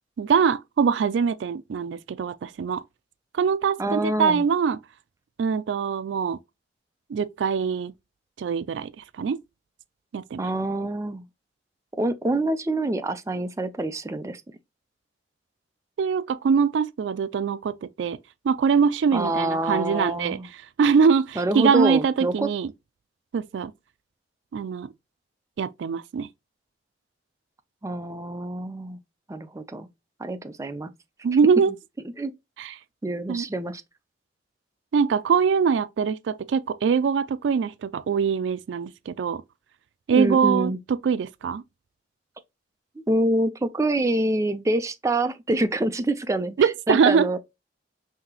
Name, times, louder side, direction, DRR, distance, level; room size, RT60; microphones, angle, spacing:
voice 1, 0.2-2.8 3.4-4.8 5.4-6.4 7.1-7.9 8.4-9.4 10.1-10.5 16.0-18.2 18.4-20.4 20.8-22.7 23.3-23.7 24.5-24.9 25.6-26.3 31.2-31.7 32.6-32.7 33.3-33.4 34.9-39.4 40.1-41.6 46.6-47.3, right 6 dB, 85° right, 0.3 m, -23 dB
voice 2, 3.8-4.5 10.4-11.3 12.0-14.4 19.1-20.5 21.4-22.5 27.8-29.0 29.3-29.9 30.2-30.9 32.2-32.3 33.0-33.8 40.1-40.8 43.1-47.4, right 1 dB, 15° right, 0.4 m, -26 dB
5.5 x 2.8 x 2.8 m
head